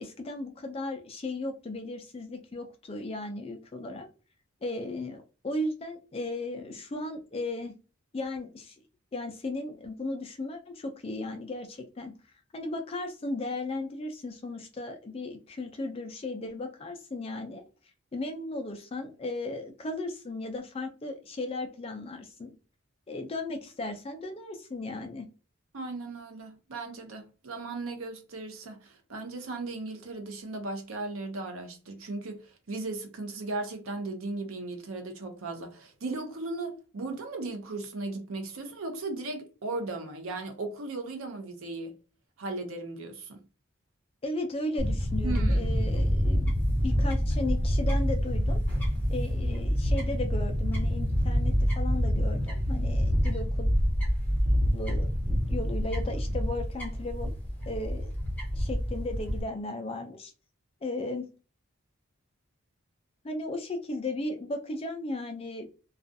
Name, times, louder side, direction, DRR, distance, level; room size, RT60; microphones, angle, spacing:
voice 1, 0.0-4.1 4.6-7.7 8.1-8.8 9.1-12.1 12.5-17.6 18.1-22.5 23.1-25.3 44.2-46.5 46.8-48.6 49.1-53.7 54.7-57.3 57.7-58.1 58.5-60.3 60.8-61.3 63.2-65.7, left 2 dB, 25° left, 0.3 m, -36 dB
voice 2, 25.7-42.0 42.4-43.4 45.2-45.7, right 2 dB, 80° right, 0.6 m, -37 dB
Fowl / Bird, 44.8-59.4, equal, 5° left, 0.7 m, -27 dB
2.4 x 2.3 x 2.6 m
head